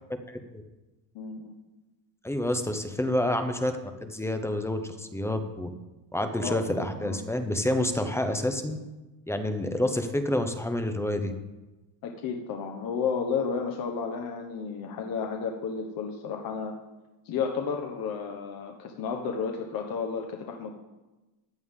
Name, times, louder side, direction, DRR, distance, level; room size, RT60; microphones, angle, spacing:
voice 1, 0.3-0.6 2.2-3.7 4.0-5.7 6.1-8.8 9.3-11.3, left 1 dB, 5° left, 7 dB, 0.8 m, -28 dB
voice 2, 1.1-1.6 6.4-7.3 12.0-16.8 17.2-20.7, left 6 dB, 50° left, 2 dB, 1.2 m, -32 dB
15.0 x 9.3 x 3.7 m, 1.1 s
cardioid pair, 140°, 46 cm